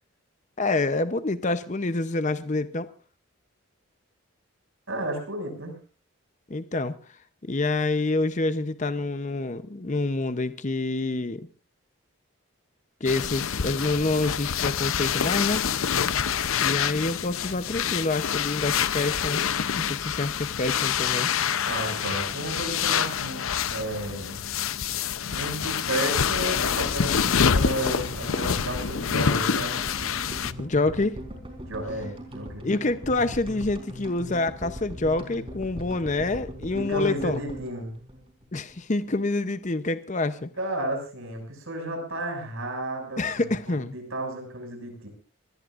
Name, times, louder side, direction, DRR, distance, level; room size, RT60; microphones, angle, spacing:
voice 1, 0.6-2.9 6.5-7.0 7.5-11.5 13.0-15.7 16.6-19.4 19.8-21.3 30.6-31.1 32.6-37.4 38.5-40.5 43.2-43.9, left 2 dB, 35° left, 12 dB, 0.7 m, -27 dB
voice 2, 4.9-5.8 21.7-24.4 25.3-29.9 31.6-32.7 36.7-37.9 40.6-45.1, right 1 dB, 65° right, 2 dB, 6.3 m, -33 dB
sound 1, 13.0-30.5, left 7 dB, 70° left, 0.7 m, -26 dB
sound 2, 26.6-38.8 39.0-39.1 39.3-39.4, equal, 25° right, 4.0 m, -40 dB
25.5 x 18.5 x 2.5 m, 0.35 s
head